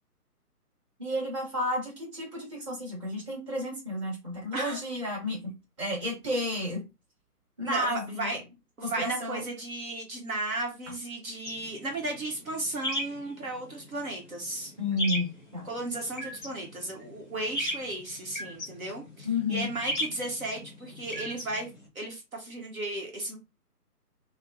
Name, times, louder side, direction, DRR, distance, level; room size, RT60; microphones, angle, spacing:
voice 1, 1.0-5.5 5.8-6.8 7.6-8.3 8.8-9.5 14.8-15.7 19.2-19.7, left 1 dB, 20° right, -6 dB, 1.3 m, -31 dB
voice 2, 7.6-8.4 8.8-14.7 15.6-21.7 21.9-23.4, right 2 dB, 60° right, 0 dB, 1.0 m, -35 dB
sound 1, 11.4-21.9, left 1 dB, 10° left, 0.8 m, -38 dB
3.3 x 2.1 x 2.7 m, 0.26 s
figure-of-eight pair, 150°, 48 cm